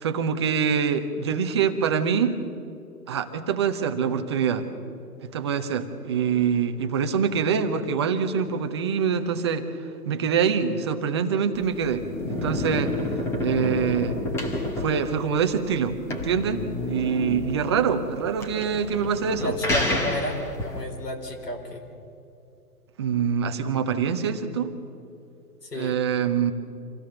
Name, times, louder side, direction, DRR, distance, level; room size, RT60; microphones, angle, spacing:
voice 1, 0.0-2.3 3.1-4.7 5.3-9.7 10.1-13.0 13.4-14.2 14.8-19.5 23.0-24.7 25.7-26.5, right 7 dB, 15° right, 7 dB, 0.7 m, -25 dB
sound 1, 11.5-20.8, left 1 dB, 5° left, 1.0 m, -30 dB
voice 2, 19.4-21.8 25.6-26.0, left 1 dB, 80° left, 2 dB, 4.6 m, -32 dB
26.5 x 16.5 x 7.0 m, 2.6 s
figure-of-eight pair, 140°, 47 cm